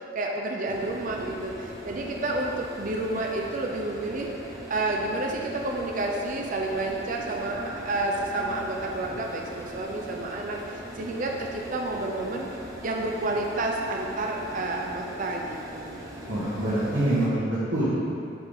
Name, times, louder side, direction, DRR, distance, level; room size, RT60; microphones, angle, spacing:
voice 1, 0.0-4.3 4.7-12.5 12.8-16.1, right 2 dB, 45° right, 0 dB, 0.6 m, -30 dB
sound 1, 0.7-17.3, equal, 20° right, 1.0 m, -41 dB
voice 2, 16.3-17.9, right 1 dB, 70° right, -12 dB, 1.8 m, -25 dB
10.5 x 4.1 x 3.6 m, 2.5 s
head